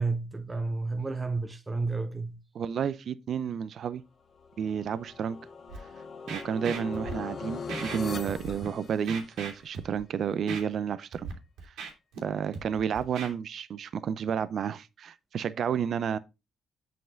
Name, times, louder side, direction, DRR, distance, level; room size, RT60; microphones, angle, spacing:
voice 1, 0.0-2.4, right 3 dB, 20° right, 0.9 m, -31 dB
voice 2, 2.5-4.0 4.6-5.4 6.3-11.3 11.6-11.7 12.2-16.2, right 7 dB, 60° right, 0.6 m, -31 dB
sound 1, 4.4-9.6, left 5 dB, 45° left, 1.4 m, -40 dB
Scratching (performance technique), 5.7-5.8 6.3-7.1 7.7-8.0 8.2-8.7 9.1-10.0 10.5-10.6 11.1-11.3 11.6-12.2 12.5-13.3, right 5 dB, 85° right, 2.4 m, -38 dB
7.9 x 5.4 x 3.8 m
cardioid pair, 90°, 0 cm